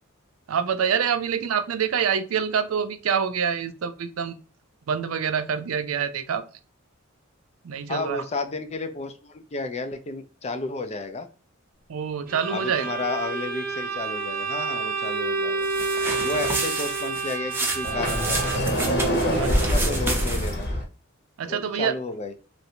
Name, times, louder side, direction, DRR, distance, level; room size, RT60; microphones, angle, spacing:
voice 1, 0.5-4.4 4.9-6.4 7.6-8.2 11.9-12.9 16.1-16.4 19.2-19.5 21.4-21.9, right 7 dB, 85° right, 11 dB, 0.4 m, -26 dB
voice 2, 7.9-11.3 12.5-15.7 16.2-18.7 19.1-20.9 21.5-22.3, left 3 dB, 30° left, 8 dB, 0.4 m, -32 dB
Bowed string instrument, 12.3-18.8, right 4 dB, 45° right, 0.8 m, -29 dB
sound 1, 15.6-20.6, right 2 dB, 10° right, 0.6 m, -30 dB
Sliding door, 17.8-20.8, equal, 55° left, 1.0 m, -24 dB
3.2 x 2.6 x 2.8 m, 0.36 s
head